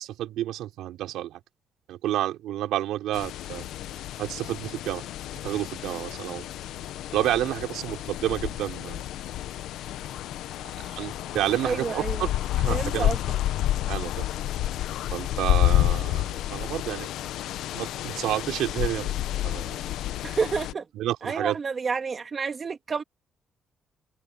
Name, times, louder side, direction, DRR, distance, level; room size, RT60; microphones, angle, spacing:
voice 1, 0.0-1.4 1.9-3.7 4.2-5.1 5.4-6.5 7.1-9.1 11.0-12.3 12.6-13.2 13.9-14.2 15.1-17.1 17.7-19.1 19.4-19.8 21.0-21.6, right 13 dB, 90° right, 3.4 m, -30 dB
sound 1, 3.1-20.7, left 13 dB, 85° left, 1.0 m, -29 dB
voice 2, 11.6-12.3 12.7-13.2 20.2-20.9 21.2-23.0, right 5 dB, 40° right, 2.0 m, -29 dB
open air
cardioid pair, 90°, 0 cm